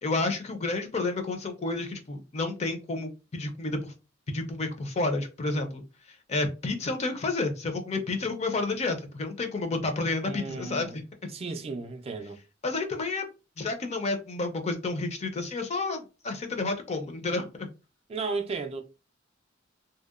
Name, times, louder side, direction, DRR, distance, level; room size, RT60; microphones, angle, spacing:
voice 1, 0.0-3.9 4.3-5.8 6.3-11.0 12.6-13.2 13.6-17.7, left 3 dB, 35° left, 0.5 m, -30 dB
voice 2, 10.2-11.0 11.3-12.4 18.1-18.8, right 4 dB, 30° right, 0.3 m, -34 dB
2.7 x 2.0 x 2.4 m
head